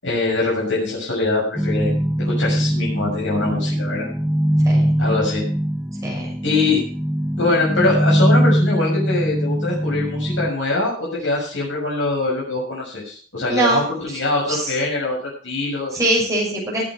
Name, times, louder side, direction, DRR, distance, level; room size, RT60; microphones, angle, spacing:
voice 1, 0.0-4.1 5.0-5.4 6.4-6.8 7.4-15.9, left 2 dB, 90° left, -4 dB, 6.4 m, -23 dB
sound 1, 1.5-10.5, equal, ahead, 0.5 m, -21 dB
voice 2, 4.6-5.0 6.0-6.3 13.5-13.8 14.5-14.7 15.9-16.8, right 1 dB, 15° right, -3 dB, 6.8 m, -22 dB
18.5 x 8.7 x 4.5 m, 0.42 s
head